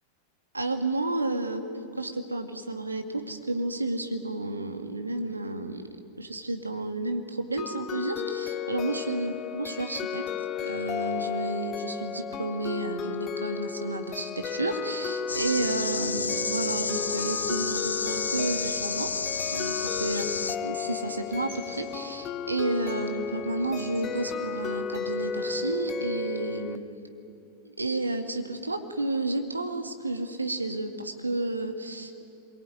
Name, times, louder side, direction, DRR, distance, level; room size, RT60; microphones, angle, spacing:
voice 1, 0.5-1.7 2.0-5.9 6.2-10.3 10.6-19.1 19.5-26.8 27.6-32.3, right 2 dB, 80° right, 6 dB, 2.2 m, -31 dB
sound 1, 7.6-26.8, left 7 dB, 30° left, 1.0 m, -34 dB
sound 2, 15.3-20.6, left 4 dB, 75° left, 0.8 m, -31 dB
sound 3, 20.9-26.2, right 4 dB, 65° right, 8.0 m, -54 dB
25.5 x 23.0 x 9.4 m, 2.6 s
figure-of-eight pair, 90°, 0 cm